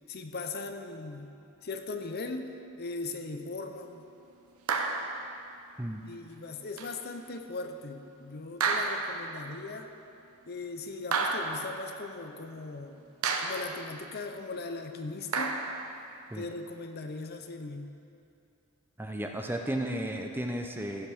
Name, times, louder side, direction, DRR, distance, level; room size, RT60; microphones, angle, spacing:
voice 1, 0.1-1.3 1.6-2.5 2.8-4.0 6.0-9.9 10.5-13.0 13.4-15.6 16.3-17.9, left 3 dB, 50° left, 6 dB, 0.7 m, -39 dB
sound 1, 4.7-5.3 6.8-6.9 8.6-9.3 11.1-11.8 13.2-13.8 15.3-15.9, right 4 dB, 85° right, 0.9 m, -30 dB
voice 2, 19.0-21.1, right 1 dB, 10° right, 3 dB, 0.5 m, -34 dB
15.0 x 5.2 x 6.1 m, 2.6 s
head